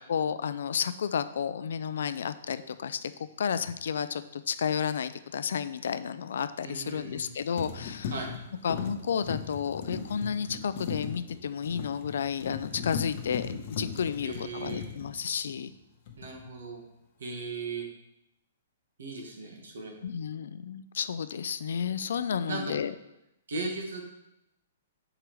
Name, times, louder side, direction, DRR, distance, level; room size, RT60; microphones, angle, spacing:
voice 1, 0.1-3.1 3.4-8.1 8.6-15.7 20.0-22.9, left 7 dB, 75° left, 13 dB, 0.3 m, -32 dB
sound 1, 3.6-3.8 6.9-7.3 7.6-15.8 16.1-16.5, left 6 dB, 45° left, 0.8 m, -38 dB
voice 2, 6.6-7.3 8.1-8.3 14.2-14.8 16.2-16.8 17.2-17.8 19.0-20.0 22.5-22.7 23.5-24.1, right 3 dB, 85° right, 2 dB, 1.4 m, -37 dB
6.5 x 4.8 x 3.0 m, 0.86 s
hypercardioid pair, 155°, 0 cm